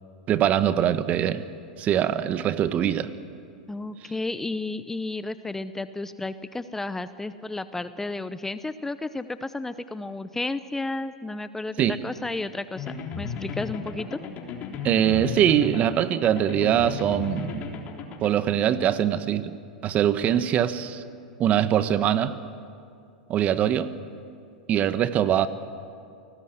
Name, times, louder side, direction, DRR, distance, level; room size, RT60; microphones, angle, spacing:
voice 1, 0.3-1.4 1.8-3.1 11.8-12.0 14.8-17.6 18.2-21.0 21.4-22.4 23.3-23.9 24.7-25.5, right 10 dB, 35° right, 13 dB, 1.2 m, -23 dB
voice 2, 3.7-12.9 13.2-14.2, left 2 dB, 10° left, 13 dB, 0.7 m, -32 dB
sound 1, 12.8-18.3, left 5 dB, 35° left, 3.4 m, -35 dB
29.5 x 19.5 x 7.9 m, 2.4 s
hypercardioid pair, 95°, 4 cm